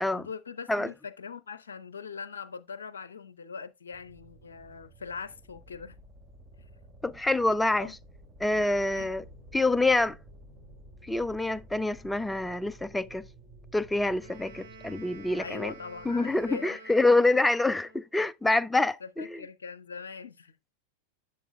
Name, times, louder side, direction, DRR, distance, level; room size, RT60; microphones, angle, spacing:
voice 1, 0.1-6.0 7.8-8.0 8.6-8.7 8.9-9.1 15.4-16.8 19.0-20.6, left 5 dB, 70° left, 0.6 m, -41 dB
sound 1, 3.9-16.5, right 1 dB, 15° right, 1.4 m, -52 dB
voice 2, 7.0-8.0 8.4-9.2 9.5-10.2 11.0-13.2 13.7-15.7 16.0-19.4, left 2 dB, 5° left, 0.3 m, -26 dB
Wind instrument woodwind instrument, 14.2-18.1, right 4 dB, 70° right, 3.9 m, -50 dB
11.0 x 7.6 x 2.2 m
figure-of-eight pair, 90°, 0 cm